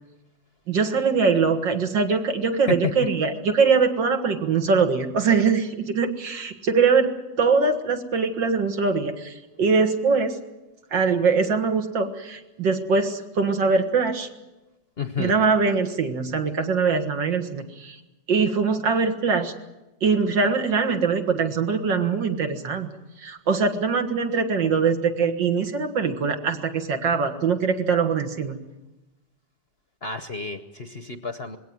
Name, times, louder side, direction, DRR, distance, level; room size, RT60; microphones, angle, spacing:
voice 1, 0.7-10.4 10.9-14.3 15.2-18.0 18.3-19.5 20.0-22.9 23.2-28.6, right 5 dB, 70° right, 5 dB, 2.4 m, -22 dB
voice 2, 15.0-15.3 30.0-31.6, left 5 dB, 40° left, 8 dB, 0.9 m, -30 dB
21.0 x 17.5 x 9.4 m, 1.0 s
omnidirectional pair, 2.0 m